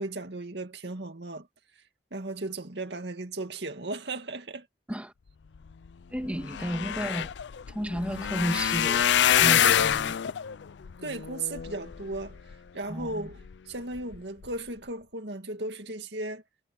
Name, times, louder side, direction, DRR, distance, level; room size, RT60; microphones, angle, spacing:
voice 1, 0.0-1.5 2.1-4.7 11.0-12.4 12.7-16.4, right 2 dB, 80° right, 2.2 m, -36 dB
sound 1, 5.9-6.0 6.2-12.5 13.1-13.5 14.0-14.2 14.4-14.5, left 9 dB, 90° left, 0.5 m, -26 dB
voice 2, 6.1-7.3 7.7-9.1 9.4-10.2 12.9-13.3, equal, 5° right, 2.2 m, -32 dB
head